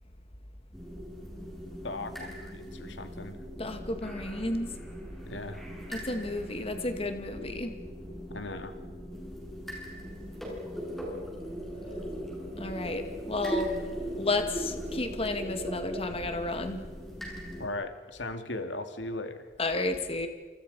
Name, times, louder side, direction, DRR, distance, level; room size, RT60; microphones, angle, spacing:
sound 1, 0.7-17.7, equal, ahead, 7.6 m, -39 dB
voice 1, 1.8-3.4 5.3-5.6 8.3-8.8 17.6-19.5, left 2 dB, 90° left, 7 dB, 2.5 m, -38 dB
voice 2, 3.6-4.7 5.9-7.7 12.6-13.8 14.1-16.8 19.6-20.3, left 2 dB, 35° left, 6 dB, 2.2 m, -32 dB
29.0 x 28.5 x 5.5 m, 1.4 s
head